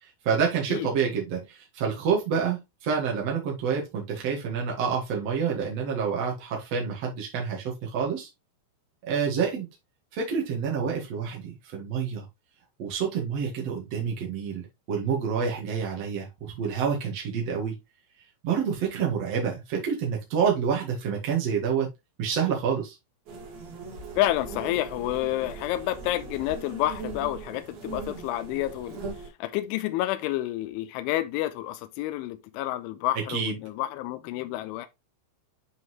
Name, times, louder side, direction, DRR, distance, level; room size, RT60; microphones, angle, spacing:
voice 1, 0.0-8.3 9.0-9.7 10.1-12.3 12.8-17.8 18.4-21.9 22.2-23.0 33.3-33.5, right 6 dB, 65° right, 1.6 m, -28 dB
sound 1, 23.3-29.3, right 3 dB, 45° right, 2.6 m, -39 dB
voice 2, 24.2-29.0 29.4-34.9, left 15 dB, 85° left, 3.1 m, -29 dB
10.5 x 3.9 x 3.1 m
omnidirectional pair, 5.5 m